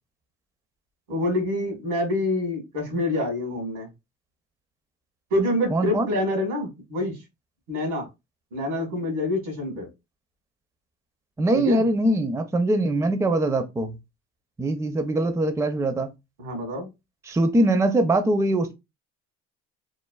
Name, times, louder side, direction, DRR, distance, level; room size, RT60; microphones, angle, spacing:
voice 1, 1.1-3.9 5.3-7.2 7.7-8.1 8.5-9.9 11.5-11.8 16.4-16.9, left 1 dB, 90° right, 1.4 m, -26 dB
voice 2, 5.7-6.1 11.4-14.0 14.6-16.1 17.3-18.7, right 1 dB, 10° right, 0.4 m, -22 dB
3.2 x 2.1 x 2.2 m
hypercardioid pair, 70°, 34 cm